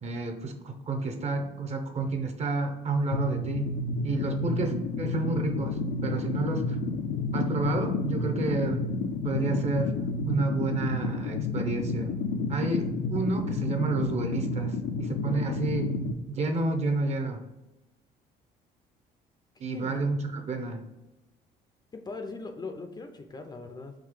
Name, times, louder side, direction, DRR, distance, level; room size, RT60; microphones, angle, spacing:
voice 1, 0.0-3.7 4.0-6.8 7.3-8.8 9.2-9.9 10.3-12.1 12.5-16.0 16.3-17.4 19.6-20.8, right 3 dB, 40° right, 5 dB, 0.8 m, -30 dB
sound 1, 3.1-16.1, left 3 dB, 75° left, 0.5 m, -30 dB
voice 2, 21.9-23.9, left 3 dB, 25° left, 6 dB, 0.5 m, -40 dB
3.8 x 2.8 x 4.7 m, 0.99 s
cardioid pair, 110°, 17 cm